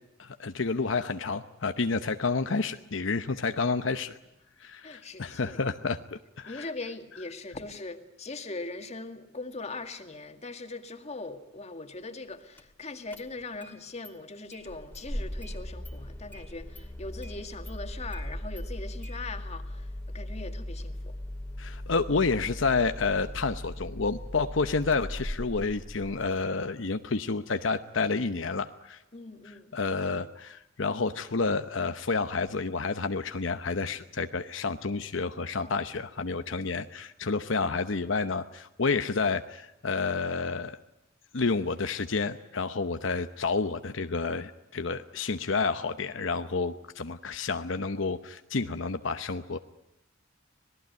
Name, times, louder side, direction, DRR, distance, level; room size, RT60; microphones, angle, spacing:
voice 1, 0.2-4.2 4.6-6.7 21.6-29.0 29.7-40.8 41.3-49.6, left 4 dB, 70° left, 0.9 m, -30 dB
voice 2, 4.8-5.7 6.5-21.2 29.1-29.7 35.6-35.8, left 3 dB, 35° left, 2.0 m, -41 dB
Engine starting, 12.6-12.7 13.1-13.7 14.0-14.1 14.5-26.4, equal, 10° left, 2.4 m, -39 dB
26.0 x 19.5 x 9.4 m
head